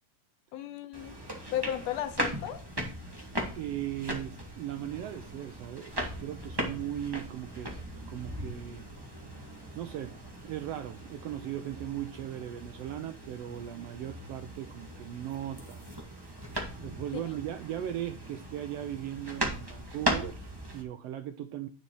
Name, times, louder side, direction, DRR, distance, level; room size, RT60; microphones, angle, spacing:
voice 1, 0.5-2.7, left 11 dB, 70° left, 1.8 m, -35 dB
sound 1, 0.9-20.8, right 1 dB, 10° right, 1.1 m, -38 dB
voice 2, 3.5-7.8 8.1-8.9 9.7-15.9 16.8-21.7, right 11 dB, 85° right, 1.4 m, -38 dB
9.8 x 5.6 x 4.6 m
omnidirectional pair, 3.5 m